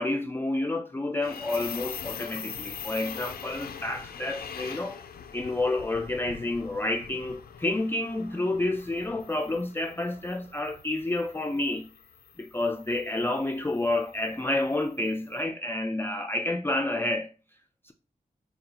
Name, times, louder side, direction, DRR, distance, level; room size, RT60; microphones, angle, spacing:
voice 1, 0.0-5.0 5.3-11.9 12.4-17.3 17.8-17.9, left 2 dB, 15° left, 0.4 m, -29 dB
sound 1, 1.2-15.3, left 7 dB, 85° left, 0.4 m, -43 dB
5.2 x 2.3 x 2.8 m
cardioid pair, 60°, 15 cm